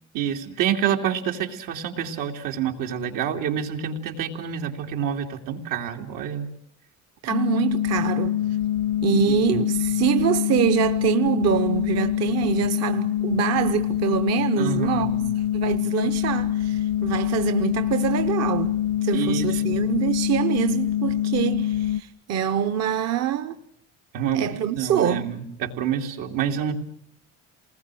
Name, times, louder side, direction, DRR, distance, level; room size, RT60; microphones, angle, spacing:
voice 1, 0.1-6.5 9.1-9.4 14.6-15.3 19.1-19.8 24.1-24.4 24.7-26.7, right 8 dB, 85° right, 3.0 m, -27 dB
voice 2, 7.2-8.4 9.0-15.1 15.5-23.6 24.3-25.3, right 9 dB, 55° right, 0.9 m, -25 dB
sound 1, 7.3-22.0, left 11 dB, 80° left, 0.9 m, -25 dB
28.5 x 20.0 x 7.7 m
cardioid pair, 170°, 31 cm